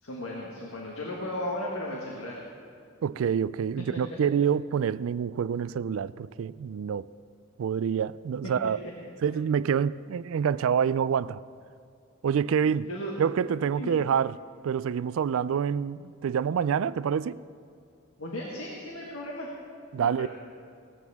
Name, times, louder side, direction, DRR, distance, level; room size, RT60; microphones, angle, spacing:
voice 1, 0.0-2.4 8.6-8.7 9.0-9.1 12.6-13.1 13.6-14.0 18.2-19.5 20.0-20.3, left 1 dB, 80° left, 1.8 m, -36 dB
voice 2, 3.0-7.1 7.6-8.8 9.2-11.4 12.2-12.9 13.2-14.4 14.6-17.4 19.9-20.3, right 7 dB, 70° right, 0.3 m, -27 dB
18.5 x 14.0 x 3.6 m
head